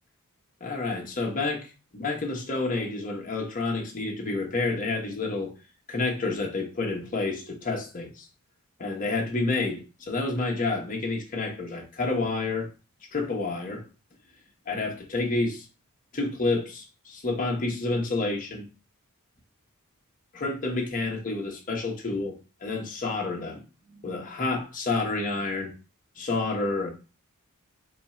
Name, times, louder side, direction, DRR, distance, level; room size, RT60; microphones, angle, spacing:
voice 1, 0.6-1.7 1.9-5.5 5.9-8.3 8.8-12.7 13.1-13.8 14.7-15.6 16.1-18.6 20.3-22.3 22.6-23.6 23.9-25.7 26.2-26.9, left 3 dB, 40° left, 1.1 m, -29 dB
4.5 x 2.4 x 4.2 m
head